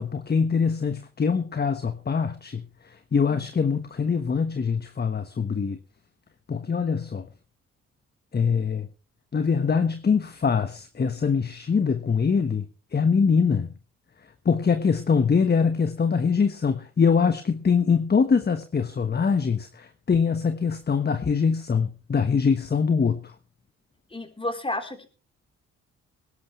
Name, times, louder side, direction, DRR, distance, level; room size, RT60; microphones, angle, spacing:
voice 1, 0.0-5.8 6.5-7.3 8.3-8.9 9.3-12.7 12.9-13.7 14.4-23.3, left 5 dB, 35° left, 9 dB, 1.2 m, -23 dB
voice 2, 24.1-25.1, left 2 dB, 20° left, 5 dB, 3.8 m, -31 dB
21.0 x 11.5 x 3.2 m, 0.33 s
supercardioid pair, 60°, 29 cm